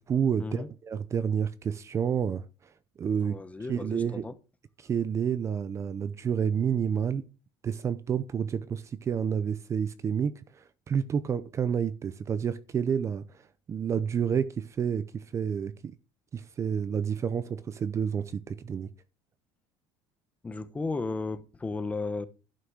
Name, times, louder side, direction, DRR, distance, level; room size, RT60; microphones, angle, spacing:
voice 1, 0.0-2.5 3.0-3.4 3.7-4.3 4.8-7.3 7.6-13.4 13.7-15.9 16.3-18.9, right 7 dB, 30° right, 0.7 m, -29 dB
voice 2, 3.2-4.3 20.4-22.3, left 3 dB, 15° left, 1.0 m, -34 dB
11.5 x 5.9 x 6.2 m
cardioid pair, 145°, 10 cm